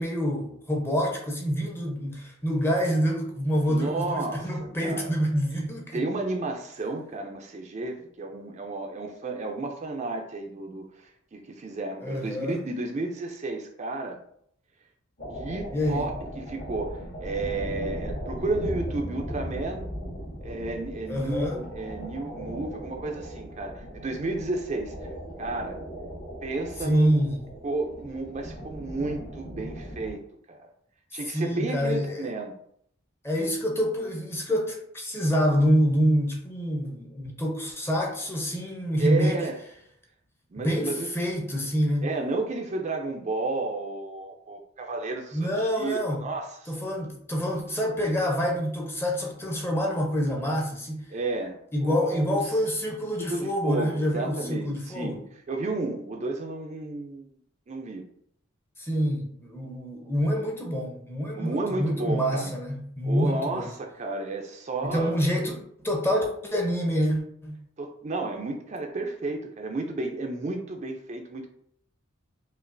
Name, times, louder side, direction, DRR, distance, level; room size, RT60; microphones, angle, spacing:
voice 1, 0.0-6.1 12.0-12.6 15.7-16.1 21.1-21.6 26.8-27.4 31.3-32.2 33.2-39.4 40.6-42.1 45.3-46.2 46.7-51.1 51.7-55.1 58.8-63.7 64.8-67.6, equal, 10° left, 0 dB, 0.6 m, -26 dB
voice 2, 3.6-5.1 5.9-14.2 15.3-19.9 20.4-25.1 25.4-25.8 26.4-27.1 27.6-30.2 30.5-30.7 31.1-32.5 39.0-39.6 40.5-41.1 42.0-45.5 45.7-46.8 51.1-52.5 53.2-55.2 55.5-57.4 57.7-58.0 61.3-62.5 63.0-65.2 67.8-71.5, right 2 dB, 35° right, 2 dB, 0.4 m, -32 dB
sound 1, 15.2-30.1, equal, 40° left, 0.8 m, -38 dB
5.1 x 2.4 x 2.5 m, 0.67 s
head